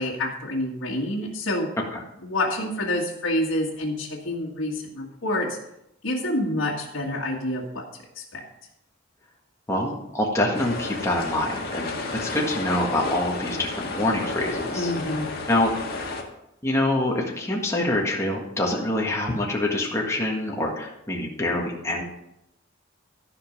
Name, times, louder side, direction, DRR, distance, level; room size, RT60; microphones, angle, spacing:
voice 1, 0.0-1.7 2.2-5.6 6.0-7.9 8.2-8.4 14.7-15.3, left 1 dB, 70° left, -4 dB, 1.8 m, -27 dB
voice 2, 9.7-11.9 12.2-14.9 15.5-15.7 16.6-22.0, left 1 dB, 15° left, -2 dB, 1.7 m, -25 dB
sound 1, 10.5-16.2, left 3 dB, 50° left, 1.8 m, -32 dB
14.0 x 5.4 x 5.3 m, 0.83 s
head